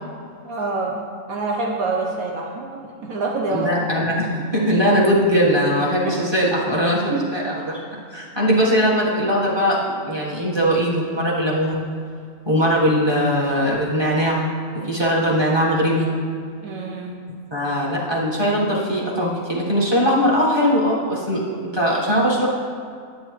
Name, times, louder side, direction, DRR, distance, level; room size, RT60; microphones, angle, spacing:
voice 1, 0.4-3.8 6.0-6.2 7.1-7.4 16.6-17.2, right 3 dB, 70° right, 0 dB, 1.1 m, -26 dB
voice 2, 3.5-7.8 8.1-11.8 12.4-14.4 14.7-16.1 17.5-22.5, equal, 20° right, -6 dB, 1.3 m, -20 dB
9.4 x 8.2 x 3.1 m, 2.2 s
omnidirectional pair, 1.6 m